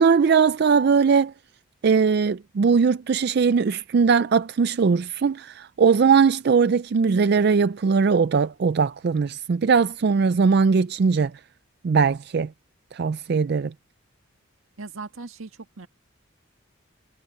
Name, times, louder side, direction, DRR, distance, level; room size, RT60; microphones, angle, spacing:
voice 1, 0.0-1.3 1.8-11.3 11.8-12.5 12.9-13.7, right 5 dB, 50° right, 0.4 m, -20 dB
voice 2, 14.8-15.9, right 3 dB, 85° right, 1.8 m, -38 dB
head